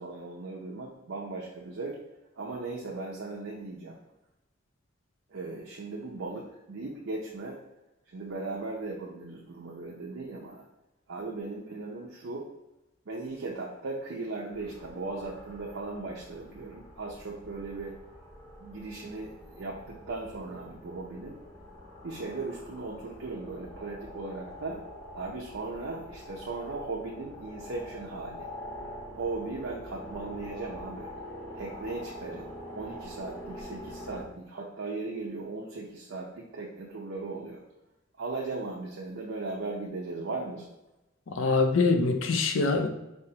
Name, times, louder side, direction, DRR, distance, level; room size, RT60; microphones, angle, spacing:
voice 1, 0.0-2.0 2.4-4.0 5.3-7.6 8.1-10.7 11.1-12.5 13.1-18.0 18.6-21.4 22.0-24.8 25.1-28.5 29.1-31.1 31.5-37.6 38.2-40.7, right 3 dB, 85° right, -3 dB, 0.6 m, -37 dB
sound 1, 14.5-34.2, equal, 15° left, 1.0 m, -45 dB
voice 2, 41.3-42.9, left 3 dB, 85° left, 6 dB, 0.5 m, -24 dB
4.6 x 3.4 x 2.8 m, 0.98 s
head